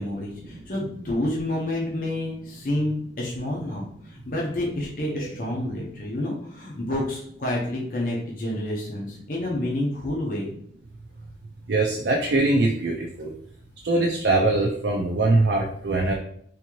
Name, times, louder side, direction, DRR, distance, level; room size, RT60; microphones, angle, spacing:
voice 1, 0.0-10.5, left 1 dB, 45° left, -3 dB, 0.7 m, -29 dB
voice 2, 11.7-13.3 13.8-16.1, right 2 dB, 65° right, 0 dB, 0.4 m, -22 dB
3.6 x 2.7 x 3.0 m, 0.66 s
head